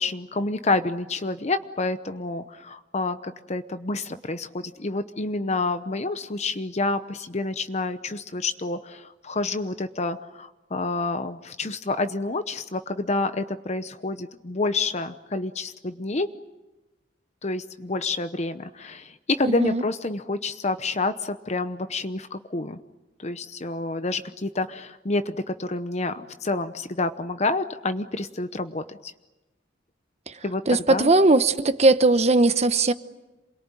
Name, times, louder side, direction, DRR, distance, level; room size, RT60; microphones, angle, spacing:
voice 1, 0.0-16.3 17.4-22.8 23.2-29.1 30.4-31.1, left 3 dB, 40° left, 0.8 m, -28 dB
voice 2, 19.4-19.8 30.3-30.4 30.7-32.9, right 2 dB, 35° right, 1.0 m, -19 dB
28.0 x 22.0 x 9.1 m
head